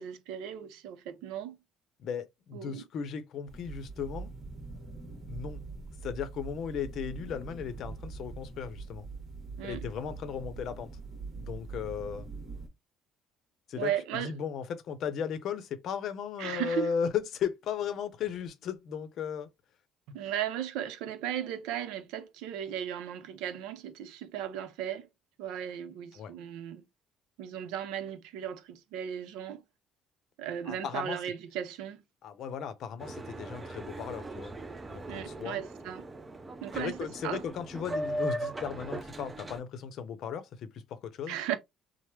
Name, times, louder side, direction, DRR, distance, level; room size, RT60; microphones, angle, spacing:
voice 1, 0.0-1.6 2.5-2.8 9.6-9.8 13.7-14.3 16.4-16.9 20.1-25.1 25.4-26.8 27.4-29.6 30.4-32.0 35.1-36.1 36.6-37.4 41.3-41.6, right 10 dB, 90° right, 0.5 m, -36 dB
voice 2, 2.0-4.3 5.3-5.6 6.0-9.1 9.6-10.9 11.3-12.3 13.7-19.5 26.1-26.3 30.7-31.2 32.2-34.6 34.9-35.6 36.7-41.4, left 7 dB, 60° left, 0.6 m, -36 dB
sound 1, 3.5-12.7, right 4 dB, 40° right, 1.2 m, -43 dB
Boat Water vehicle, 33.0-39.6, right 1 dB, 15° right, 0.4 m, -39 dB
3.2 x 2.0 x 2.9 m
cardioid pair, 125°, 0 cm